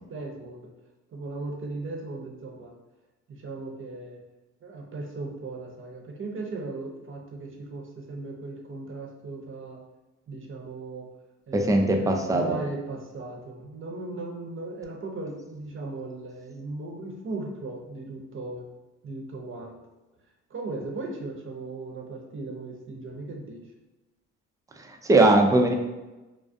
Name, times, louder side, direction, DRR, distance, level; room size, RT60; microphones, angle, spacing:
voice 1, 0.1-0.7 1.1-2.8 3.3-4.2 4.6-9.8 10.3-11.1 11.5-18.7 19.0-19.8 20.5-23.6, right 3 dB, 35° right, 1 dB, 0.7 m, -37 dB
voice 2, 11.5-12.6 25.0-25.7, right 2 dB, 10° right, 3 dB, 0.3 m, -20 dB
2.3 x 2.1 x 2.5 m, 1.1 s
supercardioid pair, 65°, 35 cm